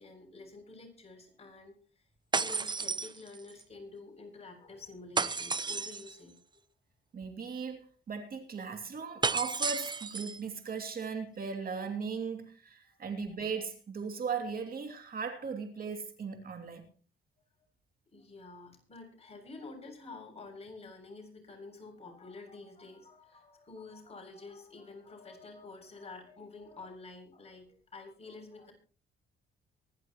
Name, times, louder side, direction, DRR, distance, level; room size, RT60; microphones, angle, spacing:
voice 1, 0.0-2.0 2.3-6.3 18.1-28.7, left 3 dB, 30° left, 7.5 m, -49 dB
sound 1, 2.3-3.6 5.2-6.2 9.2-10.4, right 4 dB, 20° right, 0.8 m, -32 dB
voice 2, 7.1-16.9, right 5 dB, 50° right, 2.8 m, -38 dB
24.5 x 11.5 x 3.1 m
cardioid pair, 90°, 20 cm